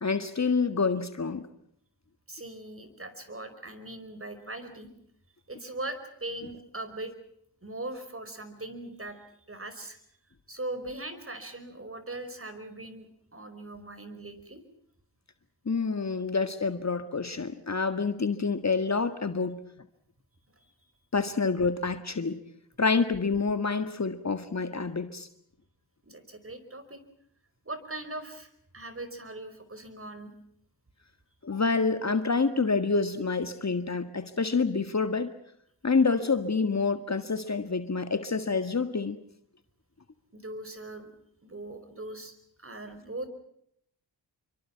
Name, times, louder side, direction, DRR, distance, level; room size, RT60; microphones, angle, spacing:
voice 1, 0.0-1.5 15.7-19.6 21.1-22.4 22.8-25.3 31.4-35.3 35.8-39.2, left 4 dB, 35° left, 10 dB, 1.8 m, -27 dB
voice 2, 2.3-4.9 5.5-7.1 7.6-9.2 9.5-10.0 10.5-14.6 20.6-20.7 26.0-27.0 27.6-30.3 40.3-41.1 41.4-43.3, right 2 dB, 30° right, 11 dB, 5.0 m, -40 dB
27.5 x 24.0 x 5.8 m, 0.68 s
cardioid pair, 45°, 45 cm